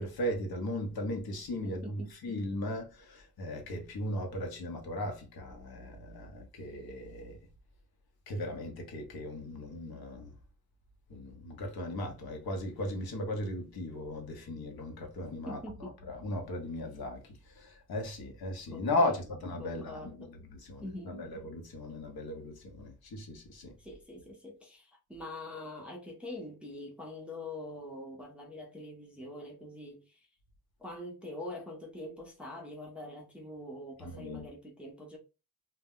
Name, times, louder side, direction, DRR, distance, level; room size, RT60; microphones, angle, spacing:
voice 1, 0.0-7.4 8.3-10.3 11.1-15.6 16.1-17.2 17.6-20.1 20.7-23.7 34.0-34.4, left 1 dB, 75° left, 0.8 m, -37 dB
voice 2, 1.6-2.1 15.5-16.0 18.7-19.3 19.6-20.3 20.8-21.3 23.8-30.2 30.8-35.2, left 1 dB, 5° right, 0.4 m, -44 dB
2.1 x 2.0 x 3.6 m
wide cardioid pair, 165°, 37 cm